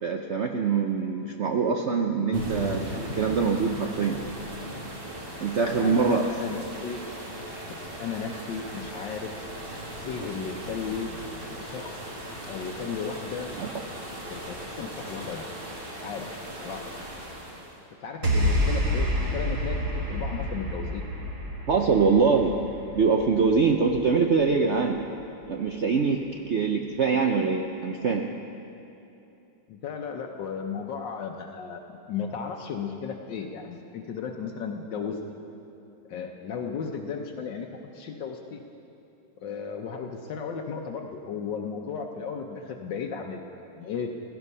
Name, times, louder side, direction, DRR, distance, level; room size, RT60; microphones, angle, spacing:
voice 1, 0.0-4.2 5.4-6.3 13.6-13.7 21.7-22.5 22.9-25.0 25.5-28.3, right 5 dB, 75° right, 3 dB, 0.6 m, -24 dB
sound 1, 2.3-17.8, equal, 30° right, 1.8 m, -38 dB
voice 2, 5.8-7.0 7.7-9.3 10.0-11.1 11.6-12.0 12.5-13.5 14.3-15.5 15.9-16.3 16.6-16.8 18.0-21.0 29.7-31.8 32.1-35.2 36.1-37.7 37.9-38.6 39.4-43.5 43.8-44.2, left 6 dB, 70° left, 2 dB, 1.5 m, -35 dB
sound 2, 18.2-24.7, equal, 55° right, 2.6 m, -28 dB
16.5 x 13.5 x 5.5 m, 2.8 s
omnidirectional pair, 2.1 m